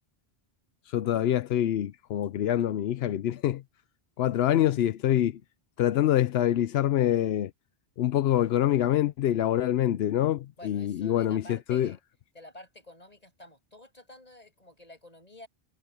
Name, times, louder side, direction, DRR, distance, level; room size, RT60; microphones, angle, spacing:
voice 1, 0.9-3.6 4.2-5.4 5.8-7.5 8.0-11.9, left 12 dB, 85° left, 0.8 m, -25 dB
voice 2, 10.6-12.0 12.3-15.5, left 1 dB, 40° left, 7.9 m, -50 dB
omnidirectional pair, 1.0 m